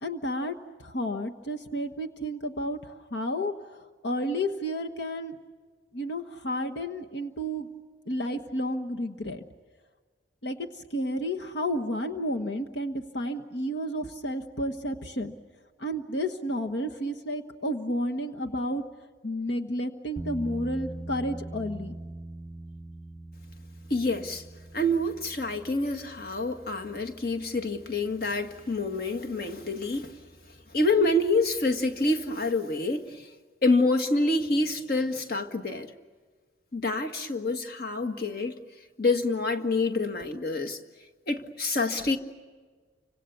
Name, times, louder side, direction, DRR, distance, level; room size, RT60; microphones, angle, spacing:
voice 1, 0.0-5.4 5.9-7.7 8.1-9.4 10.4-15.3 15.8-18.8 19.2-21.9, equal, 75° left, 1.4 m, -31 dB
sound 1, 20.2-32.5, right 1 dB, 5° right, 0.7 m, -44 dB
voice 2, 23.9-24.4 24.7-30.1 30.7-33.3 33.6-35.9 36.7-38.6 39.0-40.8 41.3-42.2, left 2 dB, 55° left, 1.9 m, -27 dB
30.0 x 26.0 x 7.0 m
head